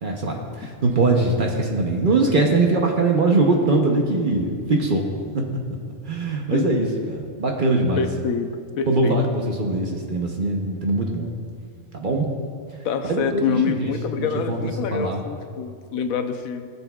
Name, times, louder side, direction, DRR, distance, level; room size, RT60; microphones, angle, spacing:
voice 1, 0.0-5.1 5.3-5.4 6.1-8.1 8.9-11.3 11.9-12.3 13.0-13.9 14.2-14.6 14.9-15.2, right 2 dB, 45° right, 1 dB, 0.8 m, -22 dB
voice 2, 8.0-8.5 8.8-9.2 12.8-16.7, left 7 dB, 85° left, 8 dB, 1.1 m, -26 dB
17.0 x 7.0 x 2.3 m, 2.2 s
omnidirectional pair, 1.4 m